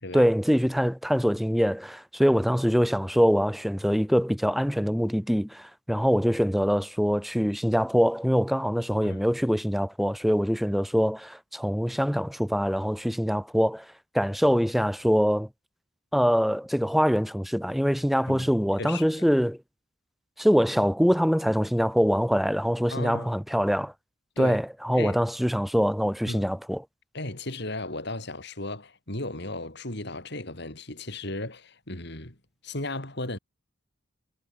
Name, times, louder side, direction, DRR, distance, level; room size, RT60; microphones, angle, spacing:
voice 1, 0.1-13.9 14.1-15.5 16.1-19.6 20.4-23.9 24.4-26.8, equal, ahead, 2.8 m, -24 dB
voice 2, 22.9-23.3 24.4-24.6 24.9-25.2 26.3-26.5 27.1-32.4 32.6-33.4, left 2 dB, 60° left, 6.2 m, -35 dB
head